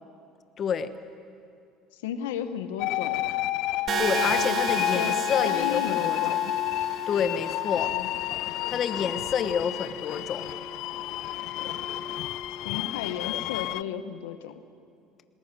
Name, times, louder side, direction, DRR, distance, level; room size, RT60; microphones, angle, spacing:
voice 1, 0.6-0.9 4.0-6.4 7.1-7.9 8.7-10.5, left 7 dB, 45° left, 11 dB, 1.1 m, -28 dB
voice 2, 2.0-3.2 4.9-6.5 7.9-8.1 12.6-14.6, left 9 dB, 90° left, 10 dB, 1.1 m, -34 dB
sound 1, 2.8-13.8, left 17 dB, 70° left, 0.5 m, -30 dB
sound 2, 3.9-7.9, right 6 dB, 45° right, 2.1 m, -33 dB
Wind instrument woodwind instrument, 4.2-13.1, left 3 dB, 15° left, 0.9 m, -43 dB
20.0 x 19.5 x 9.6 m, 2.4 s
supercardioid pair, 90°, 0 cm